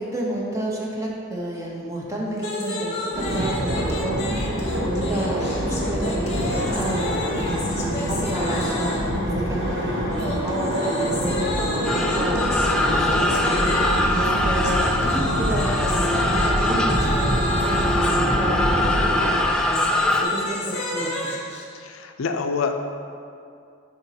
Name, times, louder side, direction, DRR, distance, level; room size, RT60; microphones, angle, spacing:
voice 1, 0.0-4.1 4.8-8.9 9.3-12.5 12.8-13.7 14.1-19.9 20.2-21.1, right 1 dB, 15° right, -4 dB, 0.9 m, -30 dB
sound 1, 2.4-9.1 10.1-18.2 19.4-21.6, left 1 dB, 35° left, 0.9 m, -31 dB
sound 2, 3.1-19.3, equal, 55° right, 1.5 m, -26 dB
sound 3, 11.8-20.2, left 1 dB, 5° left, 0.3 m, -23 dB
voice 2, 21.7-22.7, left 5 dB, 85° left, 6 dB, 0.5 m, -27 dB
10.0 x 4.0 x 2.8 m, 2.4 s
head